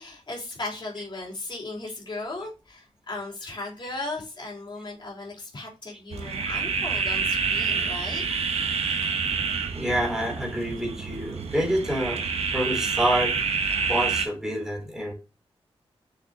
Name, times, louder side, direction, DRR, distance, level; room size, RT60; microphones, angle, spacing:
voice 1, 0.0-8.2 8.8-9.0 9.5-9.6, left 2 dB, 45° left, 3.5 m, -36 dB
sound 1, 6.1-14.3, right 5 dB, 80° right, 1.0 m, -28 dB
voice 2, 9.7-12.2 12.5-13.4 13.9-15.1, equal, 5° right, 3.3 m, -27 dB
6.8 x 6.0 x 2.9 m
wide cardioid pair, 140°, 10 cm